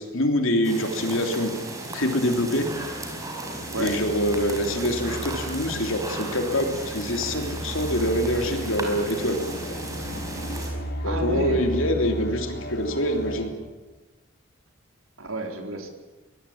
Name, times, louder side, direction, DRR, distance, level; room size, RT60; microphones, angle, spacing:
voice 1, 0.0-1.5 1.9-2.7 3.8-9.4 11.0-13.5, equal, 65° left, 5 dB, 3.4 m, -25 dB
sound 1, 0.6-10.7, right 2 dB, 15° right, 4.8 m, -35 dB
sound 2, 2.5-13.5, right 1 dB, 50° left, 3.7 m, -35 dB
voice 2, 11.0-11.6 15.2-15.9, right 2 dB, 75° right, 3 dB, 4.2 m, -30 dB
24.5 x 21.0 x 8.8 m, 1.2 s
head